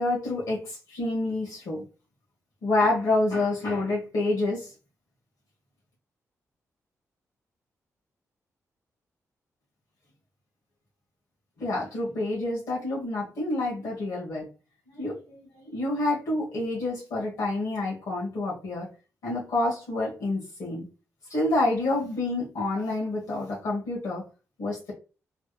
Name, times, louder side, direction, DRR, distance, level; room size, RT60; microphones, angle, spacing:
voice 1, 0.0-1.8 2.6-4.7 11.6-14.5 14.9-18.9 19.2-20.9 21.3-24.2 24.6-24.9, left 2 dB, 75° left, -5 dB, 1.4 m, -28 dB
3.3 x 3.1 x 2.2 m, 0.33 s
wide cardioid pair, 155°, 6 cm